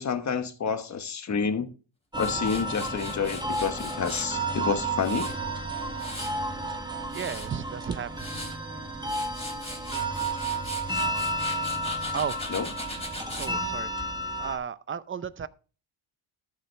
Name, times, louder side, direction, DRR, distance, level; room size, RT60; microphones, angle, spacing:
voice 1, 0.0-1.7 2.2-5.3 12.5-12.7, left 6 dB, 35° left, 1.2 m, -29 dB
sound 1, 2.1-14.6, right 1 dB, 10° right, 1.6 m, -32 dB
Tools, 2.2-4.3 4.8-6.4 6.9-7.5 8.0-8.5 8.9-13.5, left 2 dB, 10° left, 3.6 m, -40 dB
voice 2, 7.1-8.1 12.1-12.4 13.3-13.9 14.4-15.5, right 7 dB, 25° right, 0.6 m, -33 dB
13.0 x 7.4 x 3.2 m
cardioid pair, 105°, 48 cm